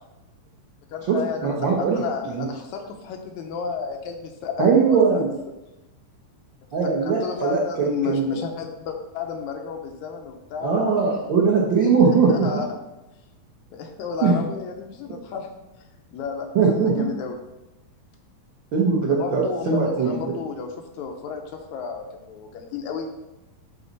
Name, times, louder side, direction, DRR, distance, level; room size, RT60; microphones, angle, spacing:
voice 1, 0.9-5.2 6.8-11.1 12.3-12.7 13.7-15.5 15.8-17.4 19.0-23.1, left 6 dB, 75° left, 3 dB, 2.0 m, -32 dB
voice 2, 1.4-2.0 2.3-2.4 4.6-5.3 6.7-8.2 10.6-12.5 14.2-14.4 16.5-16.9 18.7-20.3, right 5 dB, 75° right, -2 dB, 1.0 m, -20 dB
11.5 x 4.1 x 4.0 m, 0.99 s
omnidirectional pair, 3.7 m